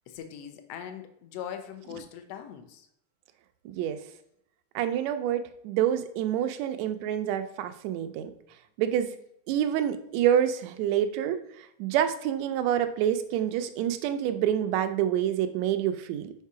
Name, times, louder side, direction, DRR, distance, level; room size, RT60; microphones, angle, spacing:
voice 1, 0.1-2.9, left 9 dB, 70° left, 7 dB, 1.7 m, -41 dB
voice 2, 3.7-4.0 4.8-8.3 8.8-9.2 9.5-16.3, right 10 dB, 80° right, 9 dB, 1.8 m, -27 dB
5.6 x 5.1 x 4.8 m, 0.75 s
omnidirectional pair, 3.3 m